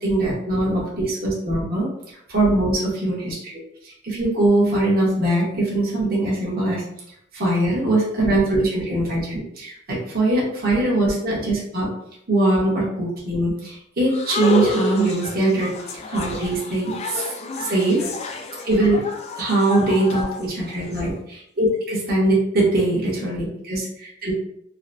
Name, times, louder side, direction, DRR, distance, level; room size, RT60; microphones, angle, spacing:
voice 1, 0.0-1.9 2.3-3.5 3.8-6.8 7.3-11.9 12.3-15.7 16.1-17.2 17.6-18.1 18.6-19.0 19.3-24.3, right 2 dB, 50° right, -6 dB, 1.1 m, -21 dB
sound 1, 14.1-21.0, left 2 dB, 30° left, 0.4 m, -29 dB
3.8 x 2.1 x 2.6 m, 0.73 s
head